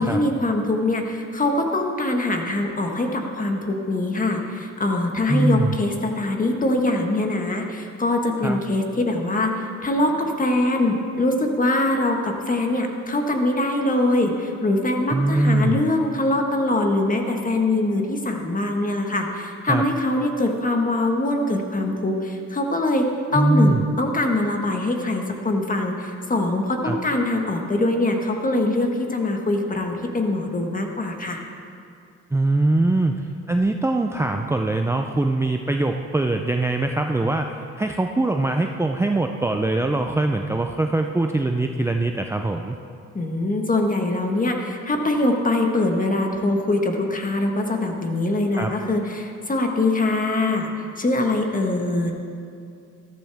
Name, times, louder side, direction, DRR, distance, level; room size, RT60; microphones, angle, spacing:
voice 1, 0.0-31.4 43.1-50.7 51.0-52.1, left 2 dB, 25° left, 3 dB, 1.6 m, -23 dB
voice 2, 5.3-5.7 8.4-8.6 15.1-15.8 19.7-19.8 23.3-23.8 26.8-27.0 32.3-33.2 33.5-42.8 48.5-48.7, right 2 dB, 10° right, 4 dB, 0.5 m, -22 dB
13.5 x 13.5 x 3.5 m, 2.4 s
cardioid pair, 90°, 30 cm